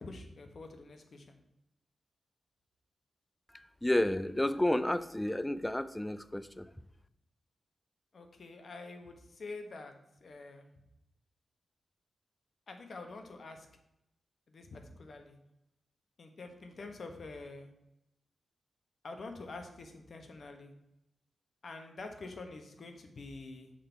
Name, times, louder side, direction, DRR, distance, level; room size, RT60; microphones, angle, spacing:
voice 1, 0.0-1.4 8.1-9.9 10.2-10.7 12.7-13.7 14.5-15.4 16.2-17.7 19.0-20.7 21.6-23.7, left 3 dB, 55° left, 5 dB, 1.1 m, -46 dB
voice 2, 3.8-6.7, left 1 dB, 10° left, 13 dB, 0.4 m, -31 dB
6.5 x 5.4 x 4.5 m, 0.86 s
wide cardioid pair, 105°, 0 cm